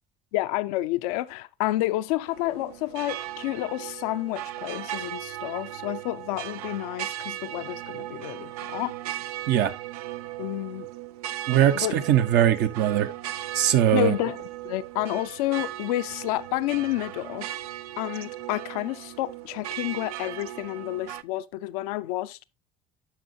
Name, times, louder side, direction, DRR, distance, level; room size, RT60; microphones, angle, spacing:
voice 1, 0.3-8.9 10.4-10.9 11.7-12.0 13.9-14.4 14.6-17.5 18.0-22.4, left 16 dB, 80° left, 0.5 m, -30 dB
sound 1, 2.3-21.2, right 14 dB, 90° right, 0.4 m, -37 dB
voice 2, 11.5-13.1 13.5-14.1, right 11 dB, 65° right, 0.9 m, -21 dB
12.0 x 5.5 x 2.7 m
hypercardioid pair, 60°, 19 cm